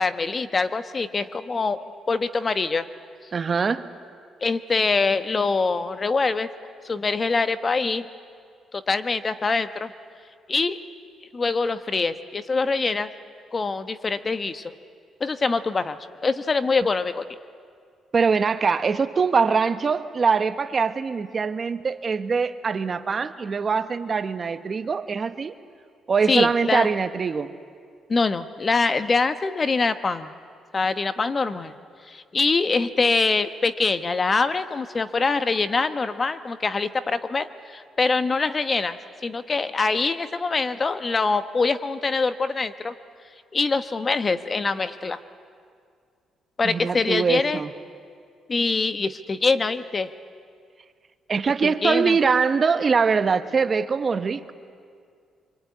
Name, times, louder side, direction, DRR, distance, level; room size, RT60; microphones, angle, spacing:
voice 1, 0.0-2.8 4.4-6.5 6.8-8.0 8.7-9.9 10.5-10.8 11.3-13.1 13.5-14.6 15.2-17.3 26.3-26.9 28.1-30.3 30.7-31.7 32.1-39.0 39.2-42.9 43.5-45.2 46.6-47.6 48.5-50.1 51.6-52.2, left 4 dB, 35° left, 11 dB, 1.2 m, -24 dB
voice 2, 3.3-3.9 18.1-25.5 26.1-27.5 46.6-47.7 51.3-54.5, right 5 dB, 40° right, 11 dB, 1.1 m, -23 dB
25.0 x 24.0 x 9.6 m, 2.2 s
cardioid pair, 90°, 0 cm